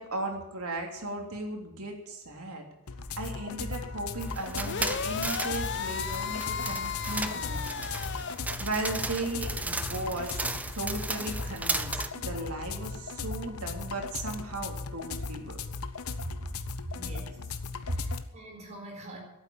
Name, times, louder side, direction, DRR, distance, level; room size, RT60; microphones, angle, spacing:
voice 1, 0.0-2.6 3.2-7.9 8.6-10.5 10.7-15.6 17.9-18.0, right 2 dB, 85° right, 2 dB, 3.0 m, -36 dB
sound 1, 2.9-18.2, left 4 dB, 80° left, 0.9 m, -38 dB
sound 2, 4.2-12.1, right 2 dB, 5° right, 0.5 m, -35 dB
sound 3, 4.6-8.4, left 6 dB, 55° left, 0.7 m, -34 dB
voice 2, 16.9-17.4 17.8-19.2, right 1 dB, 30° right, 1 dB, 4.2 m, -46 dB
12.0 x 9.0 x 8.9 m, 0.89 s
head